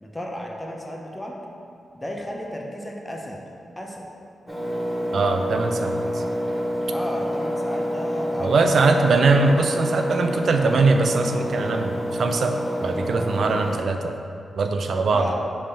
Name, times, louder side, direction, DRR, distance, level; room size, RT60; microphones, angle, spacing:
voice 1, 0.0-1.4 1.9-4.1 6.9-9.1 15.1-15.3, equal, 15° left, -1 dB, 0.8 m, -34 dB
Engine, 4.5-13.8, equal, ahead, 1.2 m, -27 dB
voice 2, 5.1-6.2 8.4-12.6 12.8-14.1 14.6-15.3, right 3 dB, 70° right, 5 dB, 0.4 m, -21 dB
5.2 x 3.5 x 5.6 m, 2.6 s
cardioid pair, 85°, 0 cm